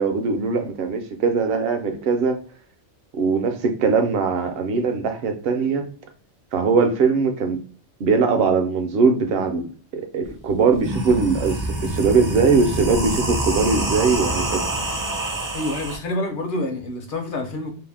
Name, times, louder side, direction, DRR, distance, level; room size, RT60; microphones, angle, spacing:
voice 1, 0.0-2.4 3.1-5.9 6.5-7.6 8.0-9.7 9.9-14.6, right 4 dB, 65° right, 6 dB, 0.7 m, -21 dB
sound 1, 10.2-10.3 10.7-16.0, right 1 dB, 30° right, 0.3 m, -26 dB
voice 2, 15.5-17.7, left 2 dB, 55° left, 4 dB, 0.7 m, -27 dB
2.6 x 2.0 x 3.3 m, 0.41 s
omnidirectional pair, 1.2 m